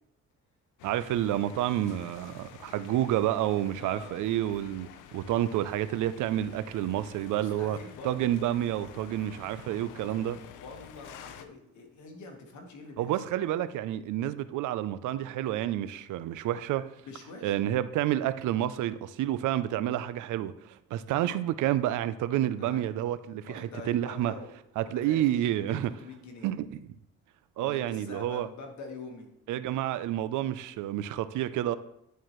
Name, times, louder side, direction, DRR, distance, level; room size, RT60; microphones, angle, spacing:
sound 1, 0.8-11.4, left 9 dB, 85° left, 0.6 m, -50 dB
voice 1, 0.8-7.8 8.0-10.4 13.0-16.9 17.4-24.3 24.8-25.9 26.4-26.9 27.6-28.5 29.5-31.7, right 12 dB, 80° right, 0.5 m, -29 dB
voice 2, 3.7-4.2 7.3-8.3 10.5-13.1 17.1-17.6 22.6-22.8 23.4-24.5 24.8-26.5 27.6-29.3, left 3 dB, 70° left, 1.5 m, -45 dB
11.0 x 4.6 x 3.0 m
cardioid pair, 90°, 30 cm